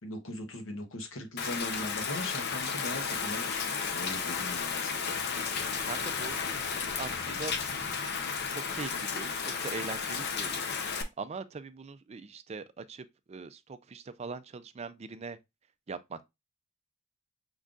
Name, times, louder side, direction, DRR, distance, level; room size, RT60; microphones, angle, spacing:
voice 1, 0.0-5.1, left 1 dB, 70° left, 1.1 m, -40 dB
Rain, 1.4-11.0, left 5 dB, 50° left, 0.6 m, -33 dB
voice 2, 5.8-7.5 8.5-10.9 11.2-15.4 15.9-16.3, right 4 dB, 30° right, 0.4 m, -42 dB
5.3 x 3.8 x 2.4 m
head